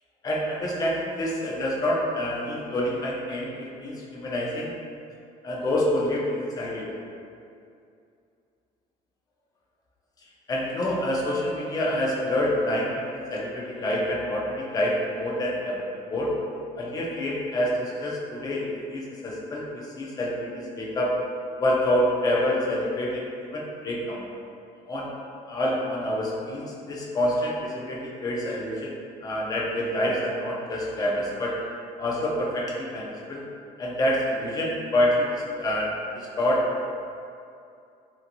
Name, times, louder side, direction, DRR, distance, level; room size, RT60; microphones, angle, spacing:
voice 1, 0.2-4.7 5.4-6.9 10.5-16.3 16.8-21.2 21.6-24.3 24.9-25.1 25.5-28.9 29.2-31.6 32.0-33.4 33.8-36.9, left 1 dB, 25° left, -3 dB, 0.4 m, -27 dB
2.8 x 2.6 x 2.5 m, 2.5 s
cardioid pair, 150°, 15 cm